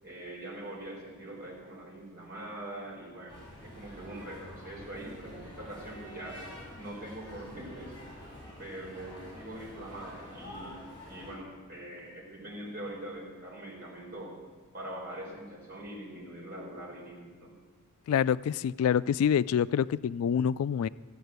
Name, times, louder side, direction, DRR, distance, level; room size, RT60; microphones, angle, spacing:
voice 1, 0.0-6.4 6.7-8.0 8.6-14.3 14.7-17.5, right 1 dB, 45° right, -3 dB, 4.7 m, -43 dB
sound 1, 3.3-11.3, left 1 dB, 20° left, 5.9 m, -47 dB
voice 2, 18.1-20.9, left 8 dB, 70° left, 18 dB, 0.3 m, -26 dB
15.0 x 8.3 x 8.0 m, 1.4 s
head